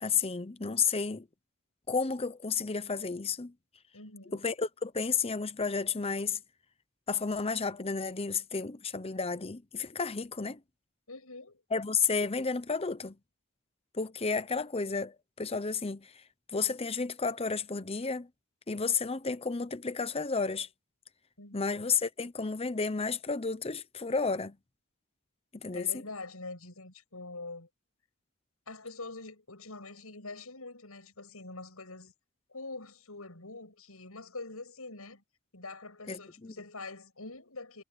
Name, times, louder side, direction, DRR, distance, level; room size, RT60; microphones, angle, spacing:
voice 1, 0.0-1.3 1.9-3.5 4.3-6.4 7.1-10.6 11.7-13.2 13.9-16.1 16.5-18.3 18.7-20.7 21.5-24.6 25.6-25.9 36.1-36.5, left 5 dB, 25° left, 0.8 m, -32 dB
voice 2, 3.9-4.4 11.1-11.6 21.4-21.7 25.7-27.7 28.7-32.1 32.5-35.2 35.5-37.8, left 3 dB, 90° left, 6.9 m, -44 dB
head